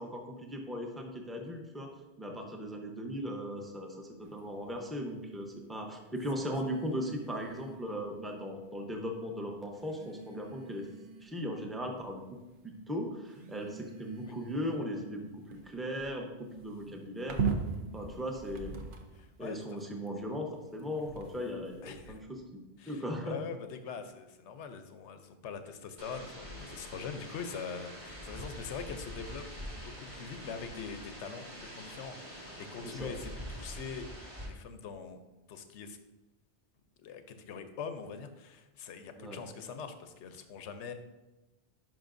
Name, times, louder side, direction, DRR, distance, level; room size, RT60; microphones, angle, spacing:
voice 1, 0.0-1.9 2.2-10.9 11.2-12.2 12.6-17.4 17.9-18.7 19.4-22.6 22.9-23.4 32.8-33.1 39.2-39.4, equal, ahead, 2 dB, 0.7 m, -38 dB
sound 1, 4.2-4.5 6.3-8.0 9.0-9.1 9.8-11.5 12.0-12.5 13.3-19.3 20.1-22.2, right 5 dB, 50° right, 0.9 m, -41 dB
voice 2, 19.1-19.6 21.8-22.2 22.8-35.2 35.5-36.0 37.0-40.9, left 6 dB, 80° left, 8 dB, 1.0 m, -43 dB
sound 2, 26.0-34.5, equal, 30° right, 1.4 m, -45 dB
10.5 x 5.4 x 2.6 m, 1.1 s
omnidirectional pair, 1.2 m